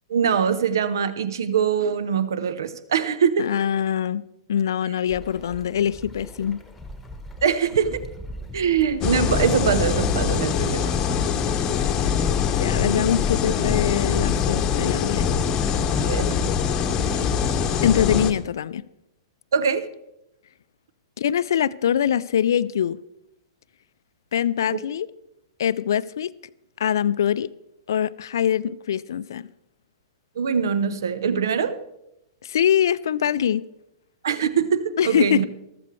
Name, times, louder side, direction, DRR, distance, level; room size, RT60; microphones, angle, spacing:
voice 1, 0.1-3.5 7.4-8.0 8.5-10.9 16.0-16.3 19.5-19.9 24.7-24.8 30.4-31.8 34.2-35.4, right 7 dB, 65° right, 0.7 m, -23 dB
voice 2, 3.4-4.2 4.5-6.6 12.6-15.2 17.8-18.8 21.2-23.0 24.3-25.1 25.6-26.3 26.8-27.5 27.9-29.5 32.4-33.6 35.0-35.4, left 9 dB, 65° left, 0.4 m, -23 dB
sound 1, 5.1-10.2, left 1 dB, 5° left, 1.5 m, -41 dB
sound 2, 9.0-18.3, left 7 dB, 30° left, 0.9 m, -23 dB
14.5 x 13.5 x 3.2 m
figure-of-eight pair, 105°, 2 cm